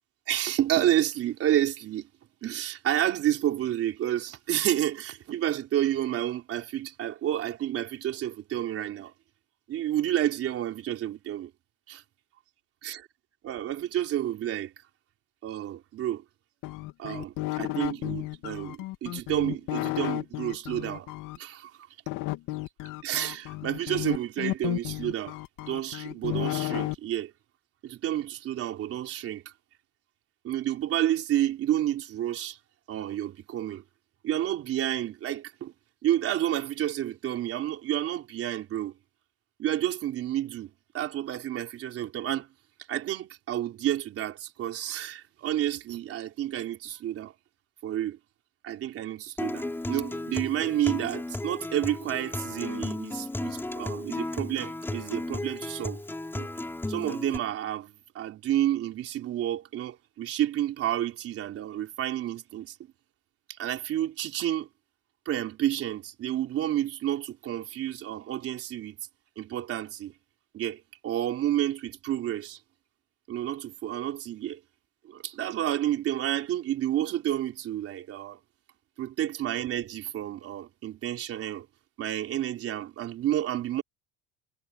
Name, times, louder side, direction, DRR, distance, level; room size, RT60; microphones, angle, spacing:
voice 1, 0.3-2.1 2.4-9.1 9.7-11.5 11.9-12.0 12.8-13.0 13.4-14.7 15.4-16.2 17.0-21.1 21.4-21.7 23.0-25.4 25.7-27.3 27.8-29.5 30.4-32.6 32.9-33.8 34.2-35.7 36.0-38.9 39.6-42.5 42.9-47.3 47.8-48.2 48.6-56.0 56.3-56.5 56.9-62.7 63.6-64.7 65.3-69.0 69.4-70.1 70.5-72.6 73.3-74.6 75.0-78.4 79.0-81.7 82.0-83.8, right 12 dB, 40° right, 3.9 m, -30 dB
sound 1, 16.6-21.4 22.1-26.9, left 18 dB, 65° left, 2.9 m, -33 dB
Acoustic guitar, 49.4-57.4, left 2 dB, 5° left, 4.3 m, -34 dB
cardioid pair, 170°, 34 cm